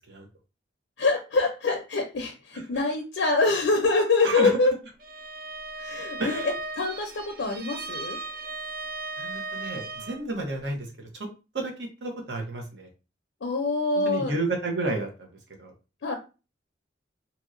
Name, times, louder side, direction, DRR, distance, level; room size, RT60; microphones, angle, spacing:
voice 1, 1.0-4.7 5.8-8.2 13.4-14.4 16.0-16.2, left 3 dB, 85° left, 4 dB, 0.5 m, -25 dB
Bowed string instrument, 5.0-10.3, right 3 dB, 50° right, 0.4 m, -37 dB
voice 2, 9.2-10.9 11.1-11.3 11.5-12.9 14.0-15.7, right 2 dB, 70° right, 1 dB, 0.9 m, -31 dB
2.9 x 2.7 x 2.5 m, 0.31 s
head